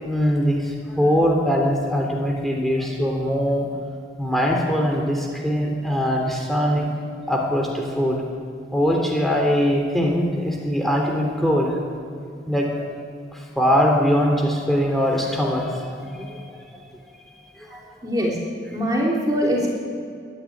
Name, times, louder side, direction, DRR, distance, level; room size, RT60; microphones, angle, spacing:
voice 1, 0.0-3.7 4.2-6.9 7.3-8.2 8.7-11.8 12.4-12.8 13.3-16.4 17.6-17.8, equal, ahead, 0 dB, 3.4 m, -22 dB
voice 2, 18.0-18.4 18.7-19.7, equal, 20° right, -3 dB, 3.2 m, -22 dB
23.0 x 11.0 x 9.9 m, 2.3 s
head